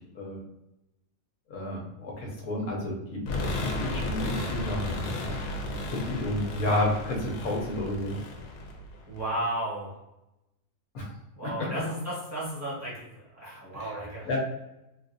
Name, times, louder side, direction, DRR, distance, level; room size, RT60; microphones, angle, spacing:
voice 1, 1.5-5.3 5.9-8.2 10.9-11.1 11.4-11.7 13.8-13.9 14.3-14.4, left 1 dB, 70° left, -1 dB, 1.3 m, -31 dB
sound 1, 3.3-9.3, left 2 dB, 90° left, 1.2 m, -34 dB
voice 2, 9.1-9.9 11.4-13.1 13.3-14.3, right 1 dB, 10° right, -8 dB, 1.2 m, -34 dB
3.6 x 2.5 x 2.5 m, 0.91 s
omnidirectional pair, 1.6 m